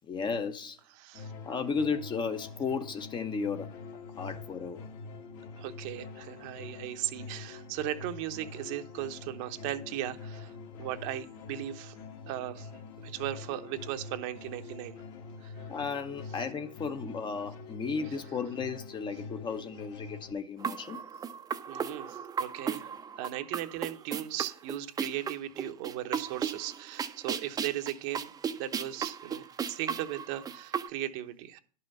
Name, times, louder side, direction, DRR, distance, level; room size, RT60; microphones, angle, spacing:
voice 1, 0.0-0.8 1.5-3.7 4.2-4.8 15.7-21.0, left 5 dB, 25° left, 0.9 m, -34 dB
voice 2, 1.0-1.3 5.6-12.0 12.3-15.0 15.4-15.6 21.7-22.9 23.2-28.3 28.6-31.6, right 13 dB, 50° right, 1.0 m, -37 dB
sound 1, 1.1-20.3, left 4 dB, 50° left, 1.8 m, -45 dB
sound 2, 20.6-30.9, right 7 dB, 20° right, 0.7 m, -36 dB
11.0 x 5.7 x 5.3 m
hypercardioid pair, 110°, 20 cm